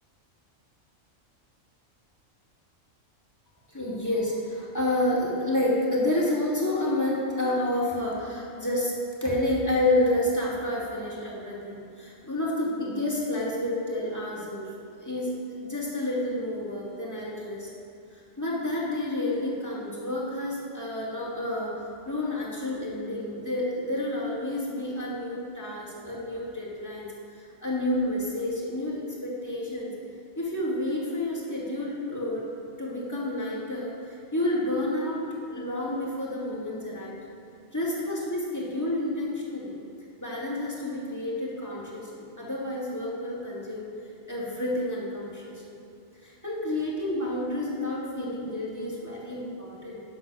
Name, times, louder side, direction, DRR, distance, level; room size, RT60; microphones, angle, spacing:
voice 1, 3.7-8.9 9.2-14.7 15.0-17.7 18.4-21.7 22.1-27.1 27.6-29.9 30.4-32.4 32.8-33.9 34.3-37.2 37.7-39.8 40.2-43.9 44.3-45.8 46.2-50.0, left 1 dB, 15° left, -6 dB, 2.2 m, -29 dB
9.7 x 6.7 x 6.2 m, 2.8 s
omnidirectional pair, 1.3 m